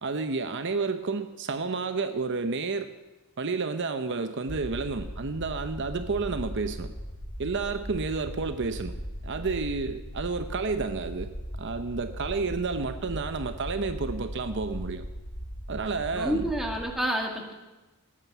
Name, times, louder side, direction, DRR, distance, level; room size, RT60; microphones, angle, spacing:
voice 1, 0.0-2.9 3.4-6.9 7.4-9.0 9.2-11.3 11.6-15.0 15.7-16.5, right 4 dB, 60° right, 9 dB, 0.8 m, -30 dB
sound 1, 4.5-16.9, equal, 80° left, 4.9 m, -38 dB
voice 2, 16.1-17.5, right 1 dB, ahead, 0 dB, 2.2 m, -29 dB
18.0 x 9.0 x 7.3 m, 1.1 s
head